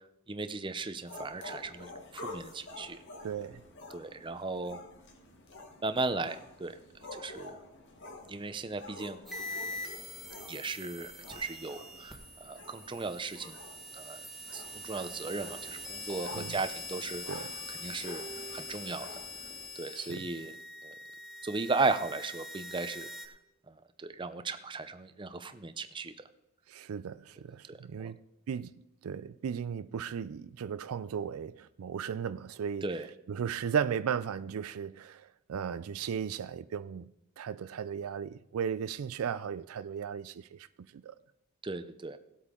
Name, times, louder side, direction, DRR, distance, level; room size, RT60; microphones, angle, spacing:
voice 1, 0.3-3.0 3.9-4.8 5.8-6.7 7.1-7.6 8.3-9.2 10.5-13.6 13.9-14.2 14.5-19.1 19.8-20.5 20.8-20.9 21.4-23.1 23.7-23.8 24.0-26.1 27.7-28.1 32.8-33.1 41.6-42.2, right 3 dB, 20° right, 0.5 m, -36 dB
sound 1, 1.0-19.7, left 2 dB, 55° left, 1.4 m, -49 dB
voice 2, 3.2-3.6 16.3-16.6 17.3-17.5 19.9-20.2 26.7-28.2 28.5-28.7 29.0-32.9 33.3-40.7 40.9-41.1, right 7 dB, 75° right, 0.4 m, -36 dB
sound 2, 9.3-23.3, left 2 dB, ahead, 1.4 m, -44 dB
sound 3, 18.0-20.5 21.5-21.7, right 3 dB, 25° left, 2.3 m, -51 dB
17.5 x 8.2 x 3.7 m
head